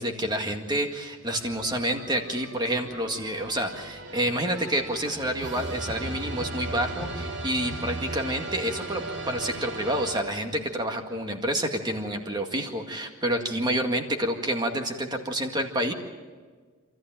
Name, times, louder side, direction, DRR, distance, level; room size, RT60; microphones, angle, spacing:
voice 1, 0.0-15.9, right 1 dB, 20° right, 4 dB, 2.0 m, -28 dB
sound 1, 1.3-10.8, right 2 dB, 50° right, 2.4 m, -37 dB
27.5 x 14.5 x 9.0 m, 1.5 s
head